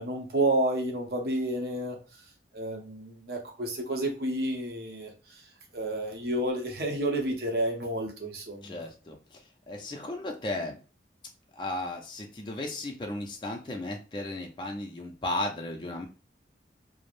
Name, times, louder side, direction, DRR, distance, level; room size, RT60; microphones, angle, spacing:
voice 1, 0.0-2.0 2.5-5.1 5.7-8.8, right 1 dB, 60° right, 2 dB, 0.7 m, -30 dB
voice 2, 8.6-10.8 11.5-16.1, left 1 dB, 25° left, 2 dB, 0.4 m, -35 dB
3.2 x 2.0 x 2.5 m, 0.33 s
head